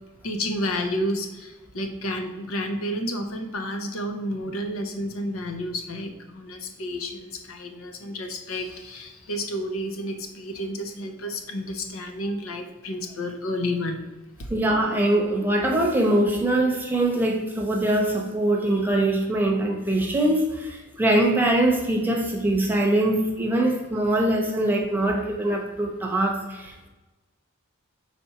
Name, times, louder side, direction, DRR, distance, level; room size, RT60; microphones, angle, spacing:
voice 1, 0.2-14.0, left 1 dB, 70° left, 6 dB, 0.8 m, -31 dB
voice 2, 14.5-26.9, right 1 dB, 10° right, 1 dB, 0.9 m, -23 dB
4.3 x 4.2 x 5.7 m, 1.1 s
head